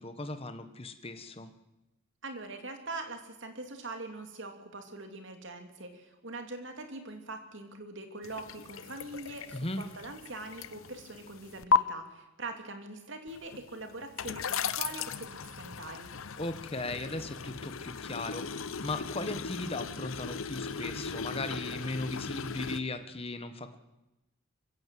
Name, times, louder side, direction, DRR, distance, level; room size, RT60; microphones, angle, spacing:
voice 1, 0.0-1.5 9.5-9.8 16.4-23.8, left 2 dB, 30° left, 9 dB, 1.4 m, -37 dB
voice 2, 2.2-16.1, right 2 dB, 60° right, 5 dB, 3.0 m, -43 dB
sound 1, 8.2-11.8 13.3-22.8, left 5 dB, 75° left, 0.8 m, -36 dB
23.5 x 16.0 x 7.8 m, 0.95 s
head